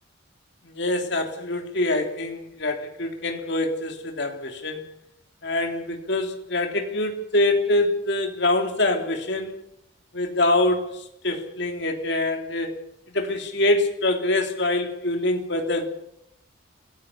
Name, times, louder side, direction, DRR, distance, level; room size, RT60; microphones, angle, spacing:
voice 1, 0.6-4.9 5.4-9.6 10.1-12.8 13.1-15.9, left 2 dB, 55° left, 4 dB, 3.3 m, -25 dB
27.0 x 17.0 x 7.2 m, 0.77 s
head